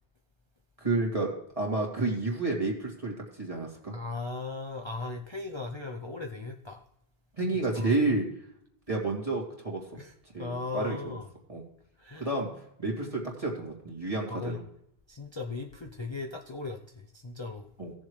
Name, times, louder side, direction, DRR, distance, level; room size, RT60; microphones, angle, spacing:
voice 1, 0.8-3.9 7.4-8.2 8.9-10.0 10.3-11.2 11.5-11.6 12.1-12.5 12.8-14.6 17.8-17.9, right 2 dB, 30° right, -1 dB, 2.7 m, -30 dB
voice 2, 3.9-6.8 7.7-7.9 10.0-10.1 10.4-11.3 12.0-12.3 14.3-14.6 15.1-17.7, left 3 dB, 30° left, 3 dB, 0.7 m, -37 dB
17.5 x 7.1 x 3.2 m, 0.74 s
omnidirectional pair, 1.1 m